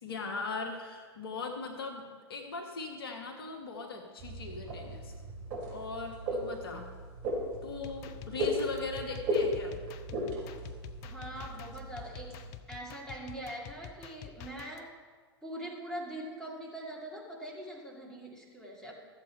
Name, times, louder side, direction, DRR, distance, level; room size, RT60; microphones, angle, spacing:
voice 1, 0.0-2.0 2.3-5.1 5.7-6.9 7.6-9.8, left 4 dB, 60° left, 2 dB, 1.4 m, -39 dB
sound 1, 4.2-12.5, equal, 35° right, 3.5 m, -36 dB
sound 2, 7.7-14.9, left 9 dB, 40° left, 0.6 m, -48 dB
voice 2, 11.0-12.4 12.7-14.9 15.4-18.9, right 1 dB, 5° left, -3 dB, 2.3 m, -42 dB
14.0 x 7.7 x 4.4 m, 1.6 s
figure-of-eight pair, 95°, 14 cm